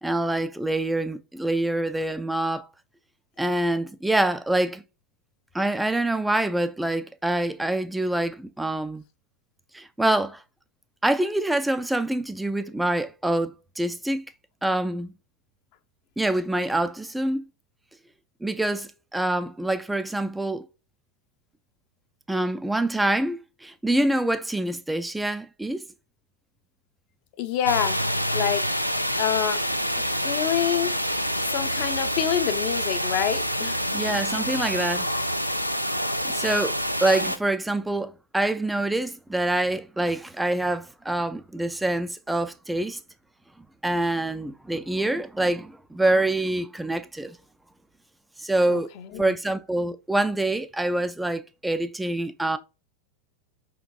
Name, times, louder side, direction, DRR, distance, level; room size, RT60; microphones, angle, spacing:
voice 1, 0.0-2.7 3.4-4.8 5.5-9.0 9.7-10.4 11.0-14.2 14.6-15.1 16.2-17.4 18.4-20.7 22.3-25.8 33.9-35.1 36.2-43.0 43.8-47.4 48.4-48.9 49.2-52.6, right 1 dB, 5° right, 0.4 m, -26 dB
voice 2, 27.4-28.0 28.3-28.7 29.2-29.7 30.0-30.9 31.5-33.8 48.7-49.3, left 10 dB, 45° left, 0.6 m, -27 dB
sound 1, 27.7-37.4, equal, 90° left, 0.4 m, -27 dB
5.1 x 3.6 x 2.3 m
figure-of-eight pair, 90°, 0 cm